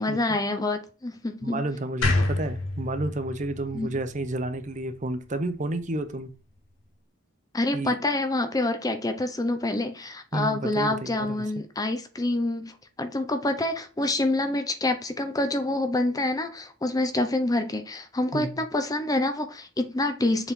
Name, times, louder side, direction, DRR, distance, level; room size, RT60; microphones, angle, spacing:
voice 1, 0.0-1.6 3.7-3.9 7.5-20.5, left 2 dB, 20° left, 0.6 m, -27 dB
voice 2, 1.4-6.3 7.7-8.0 10.3-11.4 18.3-18.5, right 2 dB, 40° right, 0.7 m, -31 dB
sound 1, 2.0-5.2, left 2 dB, 80° left, 1.5 m, -28 dB
7.1 x 4.2 x 3.6 m
head